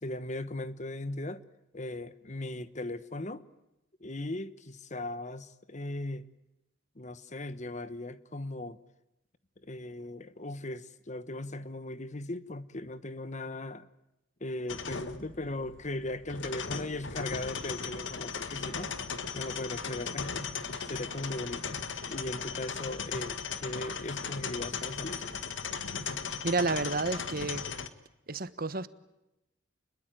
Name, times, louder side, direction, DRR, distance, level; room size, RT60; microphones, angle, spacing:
voice 1, 0.0-1.4 1.7-3.5 4.0-6.2 7.0-8.8 9.6-13.9 14.4-19.0 19.3-20.5 20.8-25.2, left 2 dB, 40° left, 1.2 m, -38 dB
sound 1, 14.7-27.9, left 5 dB, 70° left, 1.7 m, -37 dB
voice 2, 26.4-27.6 28.3-28.9, right 3 dB, 50° right, 1.3 m, -30 dB
29.5 x 22.0 x 9.1 m
head